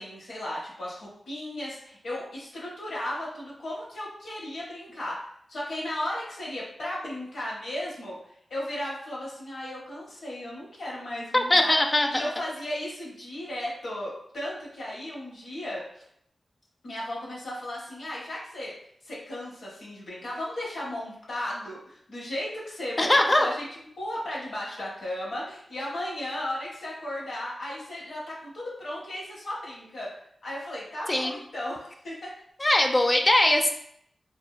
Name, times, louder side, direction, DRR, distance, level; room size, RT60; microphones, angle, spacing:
voice 1, 0.0-5.2 5.5-8.2 8.5-11.8 12.1-16.0 16.8-18.7 19.0-30.1 30.4-32.3, left 1 dB, 80° left, -6 dB, 0.8 m, -35 dB
voice 2, 11.3-12.2 23.0-23.5 31.1-31.3 32.6-33.7, left 1 dB, 30° left, 4 dB, 0.3 m, -21 dB
2.7 x 2.0 x 2.2 m, 0.69 s
cardioid pair, 45°, 0 cm